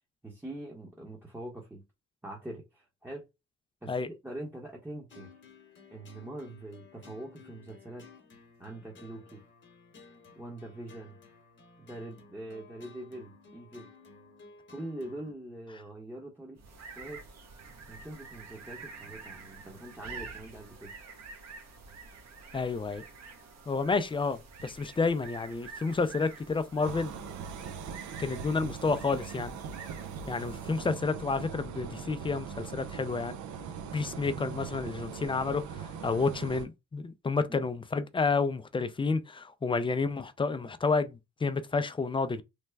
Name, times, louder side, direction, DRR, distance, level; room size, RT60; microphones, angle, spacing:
voice 1, 0.2-1.8 2.2-3.3 3.8-5.3 5.9-8.1 8.6-9.4 10.3-11.2 11.8-13.9 14.7-17.2 17.9-20.9 37.5-37.7, right 1 dB, 10° right, 0.8 m, -43 dB
sound 1, 5.1-15.3, left 5 dB, 40° left, 1.0 m, -55 dB
sound 2, 16.6-30.9, right 4 dB, 60° right, 1.0 m, -48 dB
voice 2, 22.5-23.0 23.7-27.1 28.2-29.6 30.3-33.3 33.9-42.4, left 4 dB, 20° left, 0.3 m, -30 dB
sound 3, 26.8-36.7, right 7 dB, 75° right, 0.6 m, -41 dB
3.3 x 2.1 x 3.3 m
cardioid pair, 90°, 30 cm